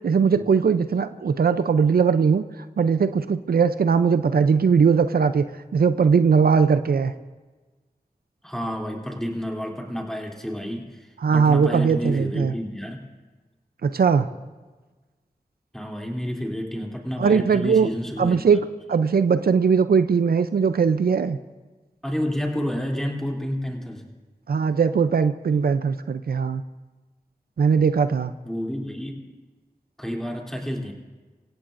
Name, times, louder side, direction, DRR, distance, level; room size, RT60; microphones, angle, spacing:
voice 1, 0.0-2.4 2.8-5.4 5.7-7.1 11.2-12.5 13.8-14.3 17.2-17.9 18.2-21.4 24.5-26.6 27.6-28.3, right 6 dB, 75° right, 11 dB, 0.5 m, -20 dB
voice 2, 8.4-13.0 15.7-18.5 22.0-24.1 28.4-29.3 30.0-30.9, equal, 5° left, 0 dB, 3.1 m, -30 dB
25.0 x 16.5 x 2.6 m, 1.3 s
cardioid pair, 45°, 16 cm